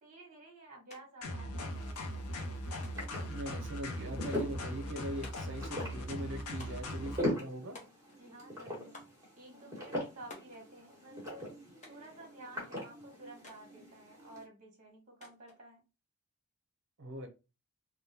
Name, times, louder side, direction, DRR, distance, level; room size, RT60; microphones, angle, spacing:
voice 1, 0.0-2.3 8.2-9.0 9.3-11.5 11.9-15.8, right 1 dB, 35° right, 1.3 m, -53 dB
sound 1, 0.9-1.0 1.3-2.0 2.8-3.2 4.3-4.7 5.2-5.6 6.6-7.0 7.7-8.3 8.9-9.2 10.3-10.6 11.8-12.1 13.4-13.7 15.2-15.6, left 3 dB, 35° left, 0.8 m, -53 dB
sound 2, 1.2-7.2, left 1 dB, 80° left, 0.6 m, -39 dB
sound 3, 1.5-14.4, left 1 dB, 15° right, 1.4 m, -42 dB
voice 2, 3.2-7.8 17.0-17.3, right 1 dB, 55° right, 0.6 m, -41 dB
3.5 x 2.2 x 2.7 m
head